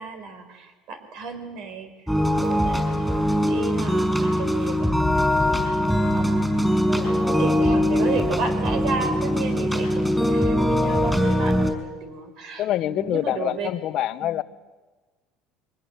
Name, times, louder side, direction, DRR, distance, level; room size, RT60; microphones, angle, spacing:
voice 1, 0.0-1.9 2.3-6.3 6.8-13.7 14.2-14.4, right 5 dB, 65° right, 8 dB, 4.3 m, -33 dB
sound 1, 2.1-11.7, equal, 5° right, 5.2 m, -22 dB
voice 2, 12.6-14.4, left 13 dB, 55° left, 15 dB, 0.8 m, -25 dB
23.0 x 19.5 x 8.0 m, 1.3 s
supercardioid pair, 115°, 0 cm